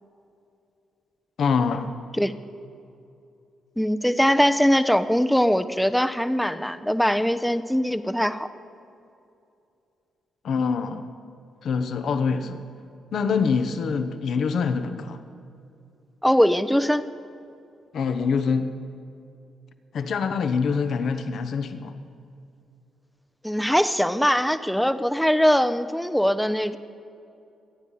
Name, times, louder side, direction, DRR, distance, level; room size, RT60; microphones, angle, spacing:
voice 1, 1.4-1.9 10.4-11.1 11.6-12.6 13.1-15.2 17.9-18.7 19.9-22.0, left 5 dB, 60° left, 8 dB, 1.1 m, -25 dB
voice 2, 3.8-8.5 16.2-17.1 23.4-26.8, equal, 5° left, 11 dB, 0.9 m, -21 dB
25.5 x 9.8 x 5.5 m, 2.6 s
hypercardioid pair, 45°, 0 cm